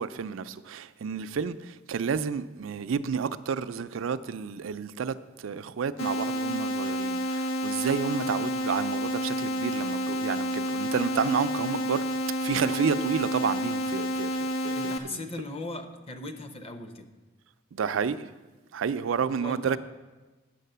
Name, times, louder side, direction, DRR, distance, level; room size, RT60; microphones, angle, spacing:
voice 1, 0.0-12.0 12.4-15.2 17.7-18.3 18.7-19.8, right 6 dB, 80° right, 0.4 m, -30 dB
sound 1, 6.0-15.0, equal, 90° left, 0.7 m, -29 dB
voice 2, 14.7-17.1 19.3-19.8, left 2 dB, 30° left, 0.8 m, -38 dB
9.2 x 6.5 x 6.7 m
head